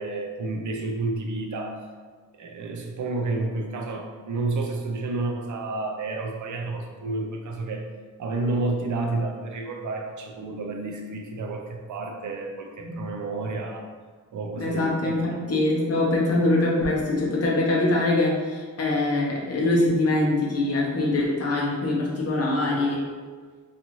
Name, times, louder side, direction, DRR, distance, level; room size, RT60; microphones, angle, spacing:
voice 1, 0.0-1.8 2.4-7.9 8.2-13.9 14.3-15.5, right 3 dB, 70° right, 2 dB, 0.5 m, -30 dB
voice 2, 14.6-23.0, left 2 dB, 50° left, -3 dB, 0.7 m, -23 dB
2.6 x 2.5 x 2.9 m, 1.5 s
wide cardioid pair, 160°, 31 cm